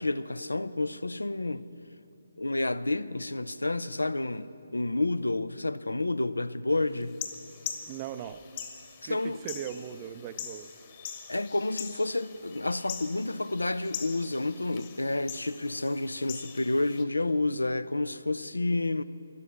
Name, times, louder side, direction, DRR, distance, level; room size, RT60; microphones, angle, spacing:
voice 1, 0.0-1.7 2.4-7.2 9.0-9.4 11.3-19.0, left 2 dB, 85° left, 0.5 m, -30 dB
sound 1, 7.0-17.0, left 8 dB, 35° left, 1.3 m, -43 dB
voice 2, 7.9-8.4 9.0-10.7, right 10 dB, 25° right, 0.5 m, -39 dB
12.5 x 11.0 x 8.3 m
figure-of-eight pair, 145°, 0 cm